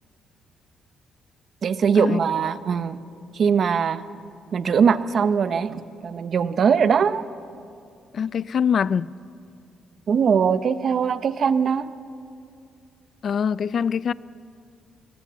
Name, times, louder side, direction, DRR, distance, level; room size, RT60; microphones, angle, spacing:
voice 1, 1.6-3.0 3.3-4.0 4.5-7.2 10.1-11.9, right 6 dB, 55° right, 0.8 m, -21 dB
voice 2, 8.1-9.1 13.2-14.1, left 7 dB, 55° left, 0.4 m, -23 dB
21.5 x 19.5 x 7.5 m
cardioid pair, 90°, 0 cm